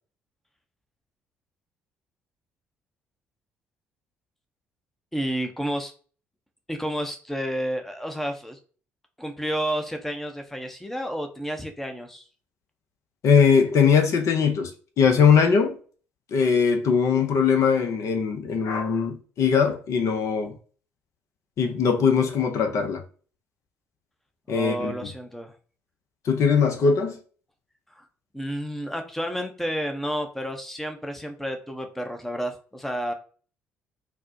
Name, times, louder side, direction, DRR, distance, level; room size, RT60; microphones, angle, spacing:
voice 1, 5.1-5.9 6.7-8.6 9.2-12.2 24.5-25.5 27.9-28.1 28.3-33.1, equal, 5° left, 0.6 m, -30 dB
voice 2, 13.2-14.7 15.0-15.8 16.3-20.6 21.6-23.0 24.5-24.9 26.2-27.2, left 6 dB, 50° left, 0.6 m, -20 dB
4.1 x 2.1 x 2.6 m
figure-of-eight pair, 50°, 6 cm